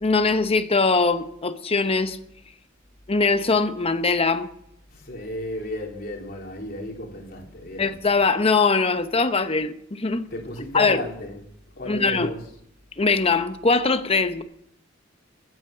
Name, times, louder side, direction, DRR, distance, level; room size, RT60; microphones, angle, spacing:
voice 1, 0.0-2.2 3.1-4.5 7.8-10.2 10.7-11.0 11.8-12.3 13.0-14.4, left 4 dB, 30° left, 0.9 m, -21 dB
voice 2, 4.9-7.9 10.3-11.4 11.8-12.4, left 1 dB, 50° left, 3.6 m, -34 dB
15.0 x 9.3 x 6.8 m
head